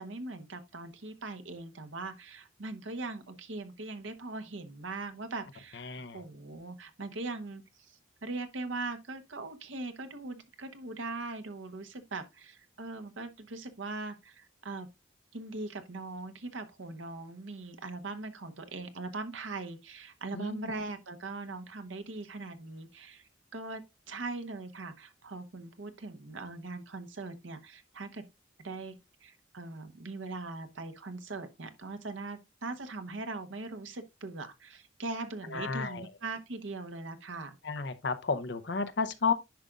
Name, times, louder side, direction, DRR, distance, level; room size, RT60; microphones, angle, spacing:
voice 1, 0.0-14.9 15.3-28.2 28.6-28.9 29.2-37.6, right 3 dB, 75° right, 1.0 m, -41 dB
voice 2, 5.9-6.2 20.3-20.7 35.5-36.0 37.6-39.3, left 5 dB, 60° left, 0.7 m, -32 dB
10.5 x 5.1 x 2.4 m
head